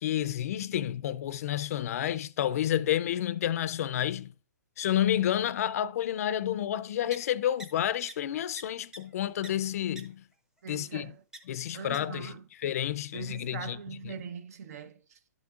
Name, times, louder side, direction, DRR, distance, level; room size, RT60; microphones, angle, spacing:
voice 1, 0.0-4.3 4.8-10.3 10.7-11.1 11.5-12.3 12.6-13.8 14.0-14.1, left 11 dB, 60° left, 0.4 m, -30 dB
sound 1, 7.1-7.2 7.6-7.7 8.1-8.2 8.6-8.7 8.9-9.0 9.4-9.5 10.0-10.1 11.3-11.4 11.9-12.0, right 1 dB, 5° right, 0.7 m, -42 dB
voice 2, 10.6-11.2 11.7-12.5 13.1-15.2, right 6 dB, 60° right, 0.9 m, -42 dB
11.5 x 5.8 x 2.4 m
hypercardioid pair, 145°, 9 cm